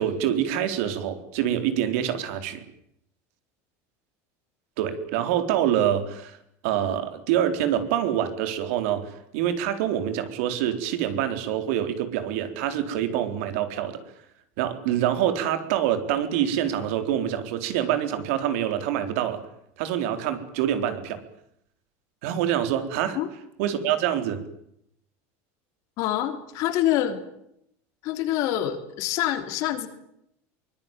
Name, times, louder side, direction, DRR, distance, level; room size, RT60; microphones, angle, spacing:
voice 1, 0.0-2.6 4.8-6.4 6.6-14.0 14.6-19.4 19.8-21.2 22.2-23.2 23.6-24.4, right 10 dB, 65° right, 9 dB, 4.1 m, -26 dB
voice 2, 26.0-27.2 28.0-29.9, left 12 dB, 45° left, 8 dB, 3.5 m, -26 dB
24.0 x 22.0 x 9.2 m, 0.76 s
cardioid pair, 180°, 8 cm